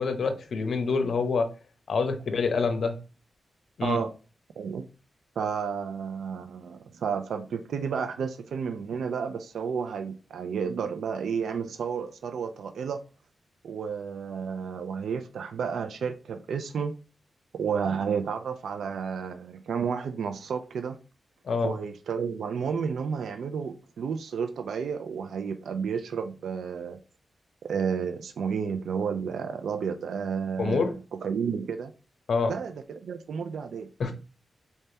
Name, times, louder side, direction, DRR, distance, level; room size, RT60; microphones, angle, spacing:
voice 1, 0.0-1.5 1.9-3.0 3.8-4.0 21.4-21.7 30.6-30.9 32.3-32.5 34.0-34.1, left 4 dB, 70° left, 0.8 m, -26 dB
voice 2, 3.8-4.1 4.6-4.9 5.4-13.0 13.6-16.9 17.5-21.0 21.6-27.0 27.6-30.8 31.1-31.9 32.4-33.9, right 6 dB, 85° right, 0.4 m, -31 dB
4.2 x 3.3 x 2.7 m
cardioid pair, 75°, 0 cm